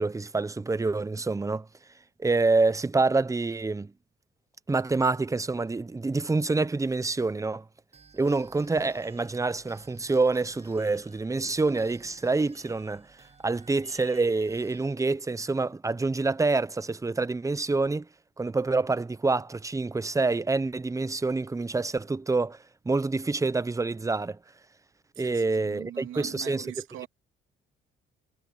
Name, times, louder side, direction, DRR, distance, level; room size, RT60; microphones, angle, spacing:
voice 1, 0.0-1.7 2.2-3.9 4.7-7.7 8.1-13.2 13.4-18.1 18.4-24.4 25.2-26.6, right 3 dB, 15° right, 0.8 m, -27 dB
sound 1, 7.9-15.0, right 4 dB, 35° right, 5.7 m, -55 dB
voice 2, 25.1-27.1, right 12 dB, 85° right, 2.7 m, -42 dB
cardioid pair, 90°, 20 cm